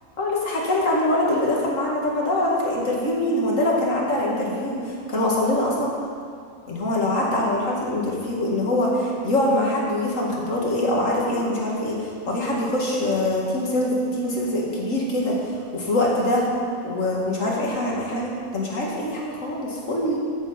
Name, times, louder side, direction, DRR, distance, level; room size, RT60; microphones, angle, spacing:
voice 1, 0.2-5.9 6.7-16.4 16.8-20.2, left 1 dB, 65° left, -3 dB, 2.4 m, -24 dB
15.5 x 7.8 x 4.4 m, 2.3 s
omnidirectional pair, 1.5 m